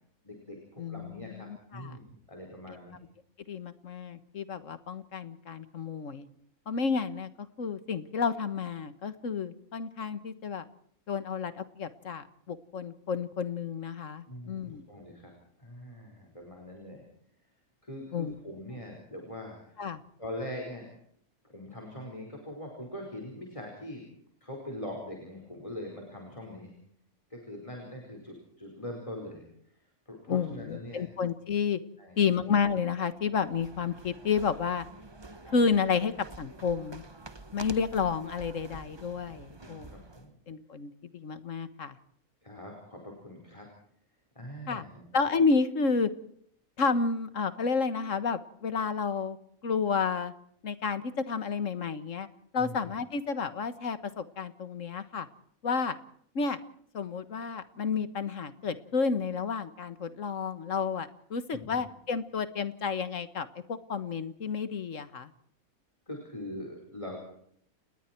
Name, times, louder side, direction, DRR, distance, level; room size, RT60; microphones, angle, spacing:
voice 1, 0.2-2.0 2.3-3.0 14.3-15.3 15.6-17.1 17.8-19.8 20.2-20.9 21.4-24.0 24.4-26.7 27.3-29.5 30.1-31.1 32.0-32.2 39.6-40.3 42.4-43.7 44.3-45.1 52.5-52.9 61.5-61.9 66.1-67.2, left 1 dB, 20° left, 0 dB, 4.9 m, -42 dB
voice 2, 0.8-2.0 2.7-2.8 3.5-6.3 6.7-7.3 7.6-10.7 11.1-14.8 18.1-18.3 19.8-20.0 30.3-31.8 32.2-34.9 35.5-36.1 36.4-37.0 37.5-39.9 40.5-42.0 44.7-44.8 45.1-46.1 46.8-49.4 49.6-50.3 50.6-52.3 52.5-55.3 55.6-56.0 56.4-56.6 56.9-65.3, left 5 dB, 60° left, 12 dB, 1.7 m, -31 dB
sound 1, 33.2-40.3, right 2 dB, 20° right, 1.0 m, -48 dB
30.0 x 20.0 x 4.6 m, 0.66 s
omnidirectional pair, 1.6 m